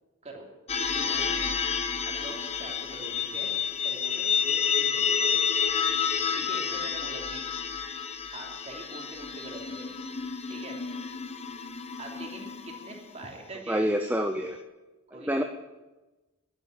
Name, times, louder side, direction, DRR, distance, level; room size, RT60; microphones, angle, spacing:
sound 1, 0.7-13.2, left 7 dB, 30° left, 1.0 m, -30 dB
voice 1, 0.9-1.5 2.1-5.5 6.3-7.4 8.3-9.9 10.5-10.8 12.0-13.8 15.1-15.4, right 2 dB, 30° right, 0 dB, 3.1 m, -43 dB
voice 2, 13.7-14.6 15.1-15.4, equal, 10° right, 5 dB, 0.6 m, -27 dB
11.5 x 11.0 x 9.0 m, 1.1 s
head